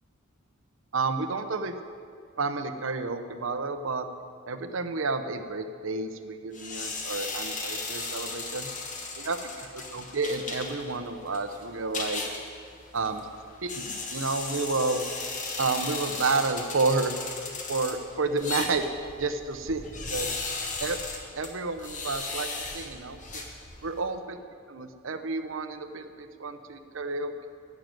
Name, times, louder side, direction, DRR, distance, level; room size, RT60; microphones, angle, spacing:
voice 1, 0.9-1.8 2.4-4.1 4.5-8.7 9.2-12.2 12.9-13.3 13.6-15.0 15.6-17.2 17.7-18.9 19.2-20.4 20.8-21.0 21.3-23.4 23.8-24.4 24.7-27.5, right 3 dB, 65° right, 8 dB, 0.8 m, -30 dB
sound 1, 6.5-24.0, left 3 dB, 40° left, 1.5 m, -36 dB
13.0 x 6.7 x 9.1 m, 2.3 s
head